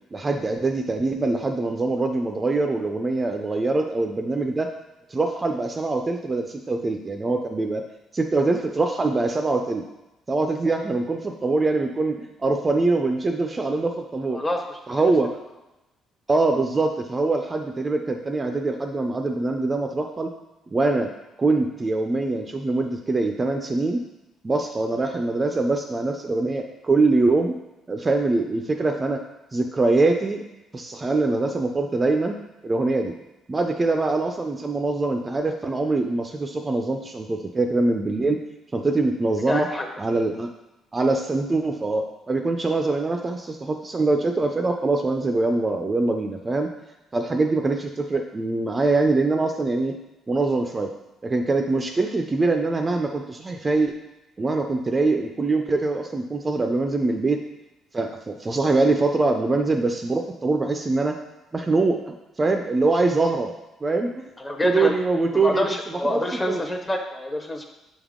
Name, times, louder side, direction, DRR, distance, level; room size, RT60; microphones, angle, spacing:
voice 1, 0.1-4.7 5.1-7.8 8.1-9.8 10.3-14.4 14.9-15.3 16.3-20.3 20.7-21.1 21.4-24.0 24.4-27.5 27.9-29.2 29.5-30.4 30.7-32.4 32.6-33.1 33.5-38.4 38.7-39.7 40.0-40.5 40.9-46.7 47.1-50.0 50.3-50.9 51.2-53.9 54.4-57.4 57.9-61.2 61.5-63.5 63.8-64.1 64.6-66.6, right 3 dB, 20° right, 4 dB, 0.4 m, -23 dB
voice 2, 14.3-15.0 39.5-39.9 64.4-65.0 65.4-67.6, left 1 dB, 15° left, 3 dB, 0.7 m, -26 dB
7.3 x 3.5 x 3.6 m, 0.97 s
cardioid pair, 135°, 0 cm